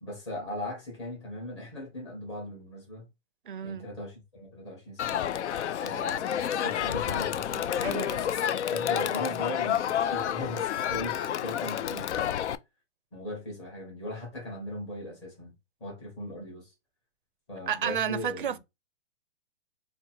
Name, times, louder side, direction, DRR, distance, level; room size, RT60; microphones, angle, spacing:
voice 1, 0.0-3.1 3.6-5.2 5.8-8.0 8.5-12.4 13.1-15.5 15.8-16.7 17.5-18.6, left 1 dB, 25° left, 1.7 m, -39 dB
voice 2, 3.5-3.9 7.8-8.2 17.7-18.6, right 8 dB, 50° right, 0.4 m, -31 dB
Crowd, 5.0-12.6, left 10 dB, 80° left, 0.5 m, -29 dB
3.9 x 2.2 x 4.3 m
hypercardioid pair, 180°, 34 cm